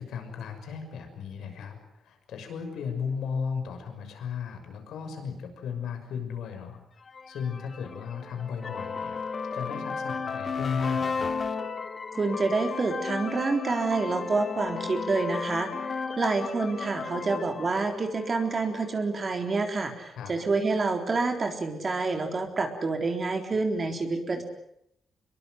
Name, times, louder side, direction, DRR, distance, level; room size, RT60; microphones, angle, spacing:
voice 1, 0.0-6.8 7.3-9.2 9.5-11.3 20.2-20.3, left 6 dB, 85° left, 6 dB, 6.3 m, -35 dB
sound 1, 7.1-18.8, left 5 dB, 40° left, 2.4 m, -34 dB
voice 2, 12.2-24.4, right 3 dB, 35° right, 4 dB, 3.8 m, -28 dB
26.0 x 22.5 x 7.9 m, 0.76 s
cardioid pair, 120°, 0 cm